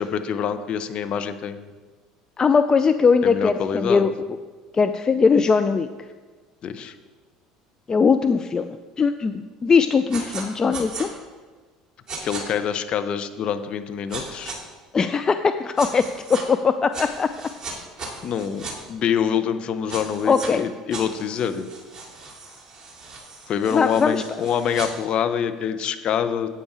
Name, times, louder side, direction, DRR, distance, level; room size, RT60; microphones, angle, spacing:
voice 1, 0.0-1.7 3.2-4.1 6.6-6.9 12.2-14.5 18.2-21.7 23.5-26.5, left 8 dB, 50° left, 9 dB, 0.8 m, -26 dB
voice 2, 2.4-4.1 4.7-5.9 7.9-11.1 14.9-17.3 20.3-20.6 23.7-24.2, left 5 dB, 30° left, 10 dB, 0.4 m, -20 dB
sound 1, 10.1-10.4 10.7-11.1 12.1-12.4 14.1-14.6 15.8-16.4 16.9-18.7 19.9-20.5 20.9-24.9, right 3 dB, 30° right, 3.1 m, -36 dB
8.9 x 8.5 x 4.9 m, 1.4 s
hypercardioid pair, 70°, 2 cm